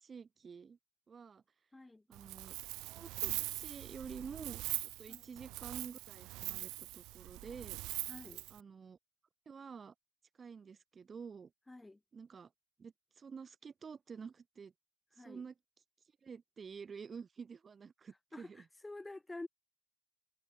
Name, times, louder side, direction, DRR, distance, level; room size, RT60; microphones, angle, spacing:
voice 1, 0.0-0.8 1.1-1.4 2.1-2.6 2.8-7.8 8.5-9.0 9.5-9.9 10.4-11.5 12.1-12.5 12.8-14.7 15.2-15.5 16.2-18.7, right 6 dB, 40° right, 1.0 m, -49 dB
voice 2, 1.7-2.0 5.1-5.3 8.1-8.5 11.7-12.0 15.2-15.4 18.3-19.5, left 2 dB, 15° left, 1.0 m, -49 dB
Wind, 2.1-8.6, right 21 dB, 75° right, 0.6 m, -42 dB
hypercardioid pair, 60°, 0 cm